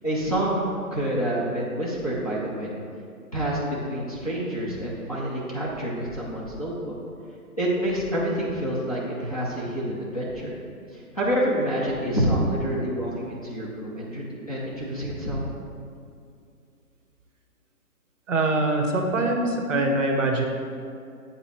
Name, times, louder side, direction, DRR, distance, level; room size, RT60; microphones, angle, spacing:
voice 1, 0.0-0.6 0.9-2.8 3.3-6.9 7.6-10.5 10.9-15.5, right 1 dB, 25° left, -8 dB, 0.6 m, -27 dB
voice 2, 18.3-20.5, right 2 dB, 55° right, 2 dB, 0.8 m, -23 dB
8.3 x 3.0 x 4.3 m, 2.4 s
hypercardioid pair, 170°, 45 cm